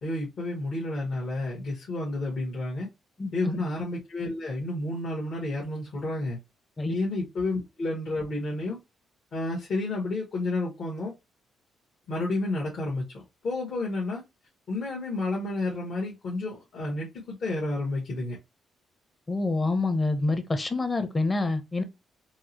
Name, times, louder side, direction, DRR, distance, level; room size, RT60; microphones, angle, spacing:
voice 1, 0.0-2.9 3.3-6.4 6.9-8.8 9.3-11.1 12.1-14.2 14.7-18.4, left 2 dB, 55° left, 1.4 m, -31 dB
voice 2, 3.2-3.6 6.8-6.9 19.3-21.8, left 3 dB, 25° left, 0.8 m, -27 dB
4.5 x 2.1 x 2.9 m
cardioid pair, 90°, 0 cm